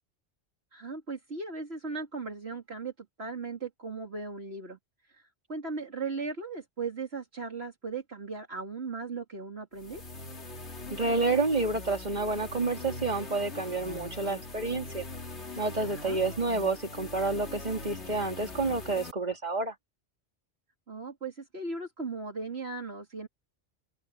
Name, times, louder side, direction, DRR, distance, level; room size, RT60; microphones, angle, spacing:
voice 1, 0.7-4.8 5.1-5.2 5.5-10.0 15.8-16.2 20.9-23.3, right 4 dB, 65° right, 2.9 m, -37 dB
sound 1, 9.7-19.1, left 2 dB, 75° left, 2.8 m, -42 dB
voice 2, 10.9-15.1 15.6-19.7, right 3 dB, 40° right, 3.0 m, -29 dB
open air
omnidirectional pair, 1.2 m